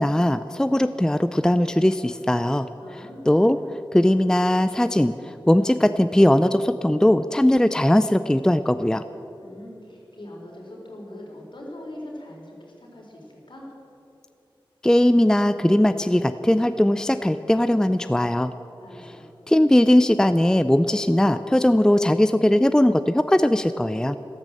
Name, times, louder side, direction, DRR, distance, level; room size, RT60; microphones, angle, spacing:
voice 1, 0.0-3.6 3.9-9.0 14.8-18.5 19.0-19.2 19.5-24.2, left 1 dB, 5° left, 11 dB, 0.4 m, -19 dB
voice 2, 2.8-3.3 9.4-13.7 18.8-19.3, left 1 dB, 65° left, -2 dB, 4.2 m, -41 dB
13.5 x 12.5 x 7.6 m, 2.7 s
wide cardioid pair, 80°, 9 cm